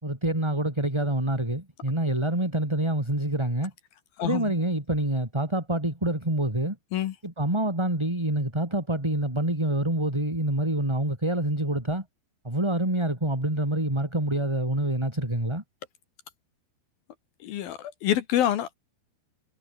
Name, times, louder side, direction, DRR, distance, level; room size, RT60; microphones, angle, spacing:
voice 1, 0.0-3.7 4.2-6.8 7.2-12.0 12.4-15.6, right 1 dB, 5° right, 3.4 m, -26 dB
voice 2, 17.4-18.7, left 11 dB, 65° left, 2.6 m, -26 dB
omnidirectional pair, 5.3 m